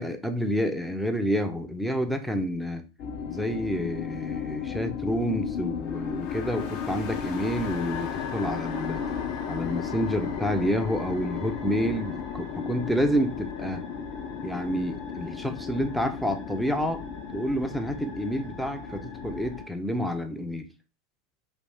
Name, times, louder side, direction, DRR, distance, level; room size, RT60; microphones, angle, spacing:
voice 1, 0.0-2.8 3.3-9.0 9.5-13.8 14.4-17.0 17.3-20.7, equal, ahead, 6 dB, 0.4 m, -29 dB
sound 1, 3.0-19.7, left 6 dB, 50° left, 0.5 m, -34 dB
2.4 x 2.1 x 3.3 m, 0.32 s
figure-of-eight pair, 85°, 0 cm